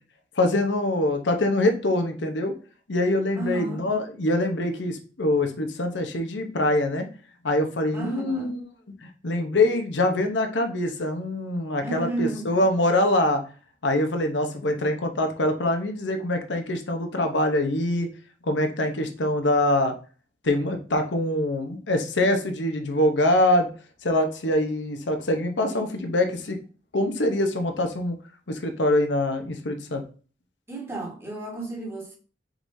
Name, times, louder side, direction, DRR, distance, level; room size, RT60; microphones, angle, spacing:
voice 1, 0.4-2.5 2.9-7.1 7.4-8.6 9.0-13.4 13.8-18.1 18.4-19.9 20.4-23.7 24.0-26.6 26.9-28.2 28.5-30.0, left 1 dB, 75° left, 0.9 m, -24 dB
voice 2, 3.4-3.8 7.9-8.6 11.8-12.5 25.5-26.1 30.7-32.2, right 2 dB, 15° right, 1.3 m, -33 dB
4.7 x 3.9 x 2.7 m
head